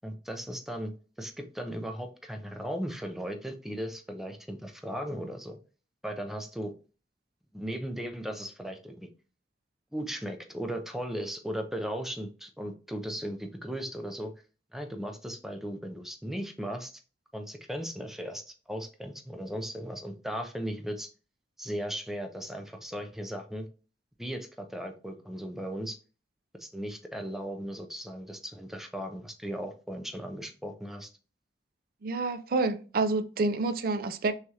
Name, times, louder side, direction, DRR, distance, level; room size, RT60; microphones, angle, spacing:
voice 1, 0.0-0.9 1.2-5.6 6.0-6.7 7.5-9.1 9.9-14.3 14.7-16.9 17.3-21.1 21.6-23.7 24.2-26.0 26.6-31.1, equal, ahead, 0.5 m, -37 dB
voice 2, 32.0-34.3, right 3 dB, 55° right, 0.4 m, -28 dB
6.0 x 2.4 x 2.8 m
head